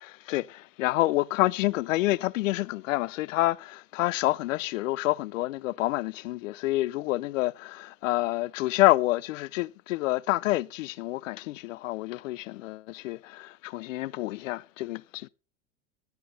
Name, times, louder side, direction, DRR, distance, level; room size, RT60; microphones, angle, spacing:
voice 1, 0.0-15.3, left 18 dB, 75° left, 0.6 m, -28 dB
16.0 x 9.4 x 4.0 m
hypercardioid pair, 80°, 39 cm